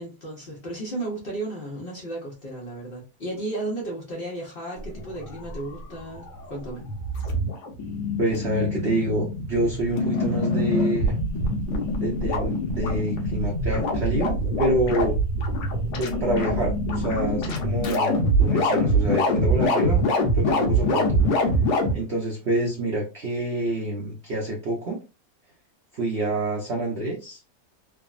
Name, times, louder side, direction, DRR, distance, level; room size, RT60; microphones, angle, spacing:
voice 1, 0.0-6.8, right 2 dB, 55° left, 0.6 m, -34 dB
sound 1, 4.8-21.9, equal, 75° left, 1.3 m, -24 dB
voice 2, 8.2-11.2 12.0-14.3 14.6-15.2 15.9-20.1 20.3-21.2 21.9-25.0 25.9-27.4, right 1 dB, 60° right, 0.7 m, -27 dB
3.4 x 2.0 x 2.3 m
omnidirectional pair, 1.9 m